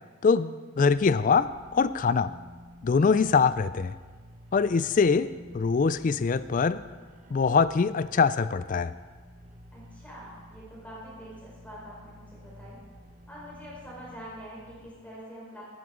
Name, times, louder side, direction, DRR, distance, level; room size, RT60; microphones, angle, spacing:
voice 1, 0.2-2.3 2.8-3.9 4.5-5.3 5.5-6.8 7.3-8.9, left 5 dB, 40° left, 15 dB, 0.3 m, -23 dB
sound 1, 0.9-14.9, equal, 35° right, 1.0 m, -51 dB
voice 2, 9.7-12.8 13.3-15.6, equal, 5° left, -6 dB, 4.3 m, -45 dB
15.5 x 10.5 x 3.8 m, 1.4 s
head